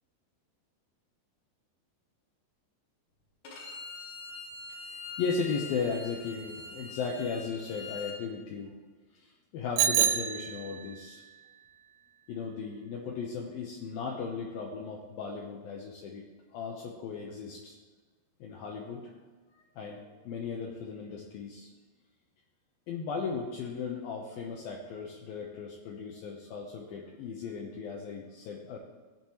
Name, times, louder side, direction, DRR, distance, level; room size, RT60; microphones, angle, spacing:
Bowed string instrument, 3.5-8.2, left 4 dB, 90° left, 4.6 m, -43 dB
voice 1, 4.9-8.7 9.1-11.2 12.3-16.2 16.5-17.8 18.4-19.1 19.8-21.7 22.9-28.8, left 5 dB, 70° left, -1 dB, 2.5 m, -36 dB
Bicycle bell, 9.8-11.0, right 9 dB, 80° right, 2.4 m, -27 dB
16.0 x 8.8 x 3.2 m, 1.4 s
omnidirectional pair, 4.8 m